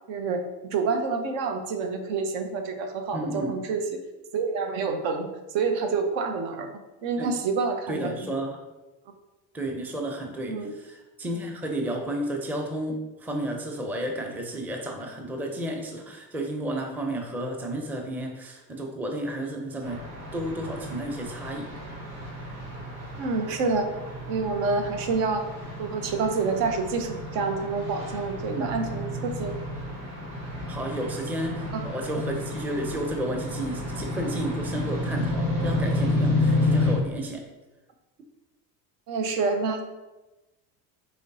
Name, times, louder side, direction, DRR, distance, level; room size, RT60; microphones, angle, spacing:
voice 1, 0.1-4.0 4.3-5.3 5.5-8.3 10.5-10.7 23.2-23.9 24.3-25.4 25.8-29.5 31.7-31.8 39.1-39.8, right 4 dB, 65° right, 6 dB, 0.8 m, -28 dB
voice 2, 3.1-3.6 7.2-7.3 7.9-8.6 9.5-20.0 20.3-21.7 28.5-28.7 30.7-37.4, right 1 dB, 5° right, 2 dB, 0.5 m, -32 dB
sound 1, 19.8-36.9, left 2 dB, 90° right, 1.5 m, -30 dB
5.0 x 3.2 x 2.7 m, 1.1 s
hypercardioid pair, 75°, 50 cm